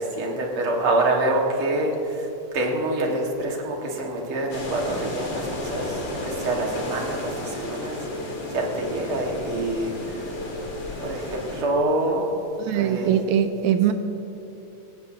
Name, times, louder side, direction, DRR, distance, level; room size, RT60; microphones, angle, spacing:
voice 1, 0.0-10.7 11.0-12.3 12.7-13.2, right 2 dB, 50° right, 0 dB, 2.2 m, -26 dB
sound 1, 4.5-11.6, left 2 dB, 45° left, 2.3 m, -33 dB
sound 2, 5.7-11.7, left 1 dB, 10° left, 2.7 m, -42 dB
voice 2, 12.7-13.9, right 9 dB, 80° right, 9 dB, 1.9 m, -21 dB
18.5 x 15.5 x 2.7 m, 2.9 s
omnidirectional pair, 3.5 m